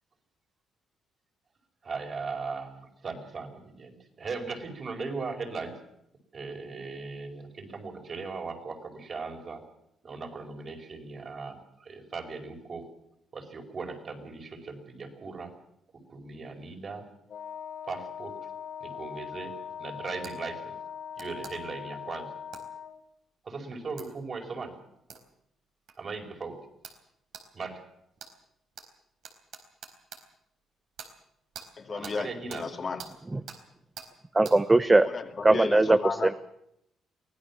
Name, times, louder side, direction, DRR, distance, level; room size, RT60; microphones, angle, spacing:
voice 1, 1.8-5.7 6.3-9.6 10.0-12.8 13.3-15.5 16.1-17.1 17.8-18.3 18.8-20.7 21.2-22.3 23.4-24.7 26.0-26.6 27.5-27.8 31.9-32.6, right 4 dB, 45° right, 3 dB, 5.1 m, -38 dB
Wind instrument woodwind instrument, 17.3-23.0, left 8 dB, 70° left, 3.2 m, -41 dB
sound 1, 20.2-20.4 21.2-21.5 22.5-22.7 24.0-24.1 25.1-25.2 25.9-26.0 26.8-27.0 27.3-27.5 28.2-28.3 28.8-28.9 29.2-30.2 31.0-31.1 31.5-31.7 32.0-32.2 32.5-32.6 33.0-33.1 33.5-33.6 34.0-34.1 34.4-34.6, right 7 dB, 70° right, 4.2 m, -44 dB
voice 2, 31.8-33.0 35.0-36.3, left 5 dB, 40° left, 5 dB, 2.3 m, -34 dB
voice 3, 34.3-35.1 35.4-36.0, right 2 dB, 20° right, 11 dB, 0.8 m, -19 dB
24.0 x 17.0 x 7.3 m, 0.78 s
cardioid pair, 90°, 0 cm